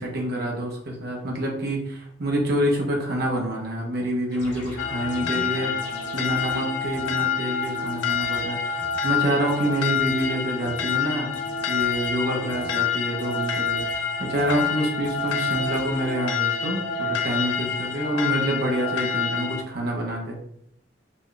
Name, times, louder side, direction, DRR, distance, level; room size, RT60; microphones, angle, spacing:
voice 1, 0.0-5.7 6.1-11.3 11.7-20.4, right 1 dB, 55° right, -1 dB, 0.9 m, -27 dB
sound 1, 4.3-6.6 6.9-7.3 7.6-8.4 8.8-9.1 9.5-10.3 10.6-11.0 11.3-12.2 12.5-12.8 13.2-14.0 14.3-14.7 15.0-15.8, left 1 dB, 40° left, 1.2 m, -43 dB
sound 2, 4.8-19.6, left 6 dB, 85° left, 0.4 m, -27 dB
4.2 x 2.3 x 3.2 m, 0.74 s
head